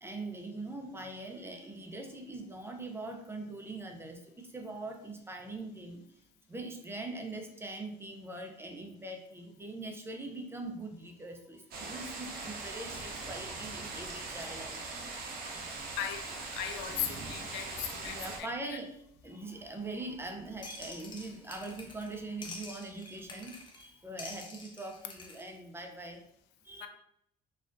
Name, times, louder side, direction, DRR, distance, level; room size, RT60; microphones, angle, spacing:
voice 1, 0.0-6.0 6.5-15.2 18.1-19.0 19.2-26.2 26.6-26.9, right 2 dB, 15° right, 3 dB, 0.6 m, -42 dB
sound 1, 11.7-18.4, right 3 dB, 60° right, 0.7 m, -41 dB
voice 2, 15.6-18.5 26.8-26.9, left 10 dB, 85° left, 6 dB, 0.4 m, -38 dB
sound 2, 20.6-22.2 22.4-23.9 24.2-25.5, left 3 dB, 30° left, 0.7 m, -47 dB
4.1 x 2.4 x 2.5 m, 0.73 s
cardioid pair, 110°, 17 cm